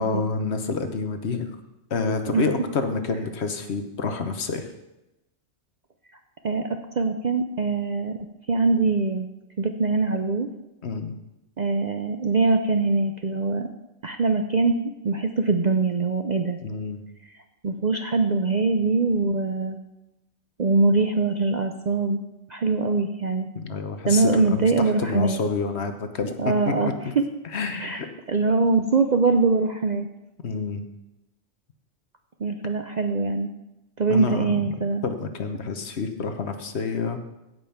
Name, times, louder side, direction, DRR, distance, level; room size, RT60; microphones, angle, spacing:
voice 1, 0.0-1.6 1.9-4.7 10.8-11.1 16.6-17.0 23.5-24.7 25.0-26.7 27.5-28.1 30.4-30.8 34.1-34.7 35.0-37.2, left 4 dB, 60° left, 7 dB, 1.2 m, -28 dB
voice 2, 7.0-8.2 8.5-9.3 9.6-10.5 11.6-13.7 14.0-14.8 15.0-16.6 17.6-19.8 20.6-22.2 22.5-23.5 24.1-25.4 26.4-27.2 27.7-28.0 28.3-30.1 32.4-33.5 34.0-35.0, right 3 dB, 45° right, 6 dB, 0.6 m, -23 dB
15.5 x 5.4 x 5.8 m, 0.95 s
omnidirectional pair, 1.3 m